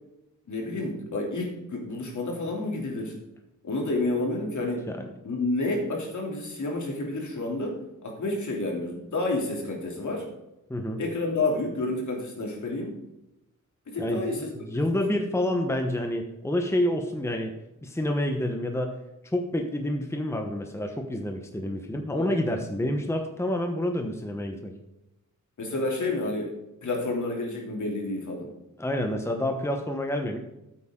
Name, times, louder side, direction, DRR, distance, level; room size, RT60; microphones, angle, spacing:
voice 1, 0.5-3.1 3.6-4.9 5.2-10.3 11.0-13.0 13.9-14.5 14.9-15.0 22.1-22.3 25.6-26.6 26.8-28.5, left 2 dB, 65° left, -1 dB, 3.2 m, -30 dB
voice 2, 10.7-11.0 14.0-17.5 17.8-19.0 19.2-24.7 28.8-30.4, left 1 dB, 10° left, 3 dB, 1.1 m, -28 dB
13.5 x 8.4 x 3.8 m, 0.91 s
wide cardioid pair, 150°, 32 cm